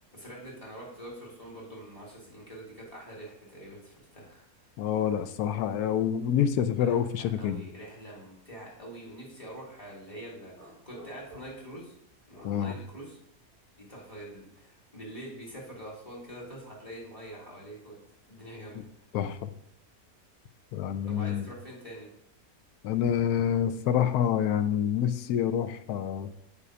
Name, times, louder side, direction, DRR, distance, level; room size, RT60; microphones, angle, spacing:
voice 1, 0.1-4.7 6.8-11.9 12.3-13.2 13.9-18.0 18.3-18.8 21.0-22.1, right 1 dB, 20° left, -4 dB, 3.6 m, -45 dB
voice 2, 4.8-7.6 12.4-12.8 19.1-19.5 20.7-21.5 22.8-26.3, left 9 dB, 85° left, 10 dB, 1.2 m, -27 dB
sound 1, 10.5-11.8 12.3-12.7, right 1 dB, 50° left, 3.3 m, -51 dB
8.2 x 5.0 x 6.7 m, 0.73 s
omnidirectional pair, 1.6 m